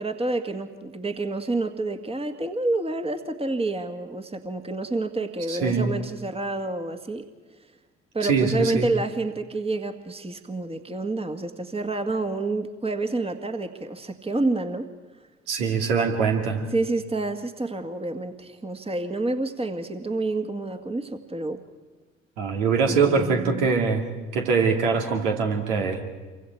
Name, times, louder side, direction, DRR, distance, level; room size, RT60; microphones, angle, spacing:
voice 1, 0.0-7.2 8.1-14.9 16.7-21.6 22.8-23.7, right 2 dB, 15° right, 6 dB, 1.8 m, -28 dB
voice 2, 5.5-5.9 8.2-8.9 15.5-16.6 22.4-26.0, right 5 dB, 75° right, 2 dB, 2.6 m, -23 dB
28.5 x 24.5 x 4.7 m, 1.3 s
figure-of-eight pair, 50°, 35 cm